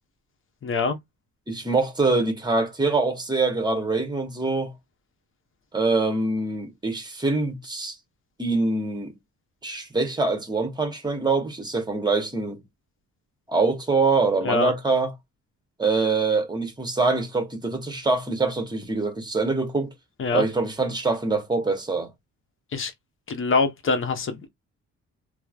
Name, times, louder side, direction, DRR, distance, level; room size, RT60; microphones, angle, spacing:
voice 1, 0.6-1.0 14.4-14.7 20.2-20.4 22.7-22.9 23.3-24.5, left 4 dB, 45° left, 0.8 m, -24 dB
voice 2, 1.5-4.7 5.7-7.9 8.4-9.1 9.6-12.6 13.5-15.1 15.8-19.9 20.3-22.1, right 3 dB, 15° right, 1.0 m, -24 dB
3.0 x 2.0 x 2.4 m
cardioid pair, 90°, 30 cm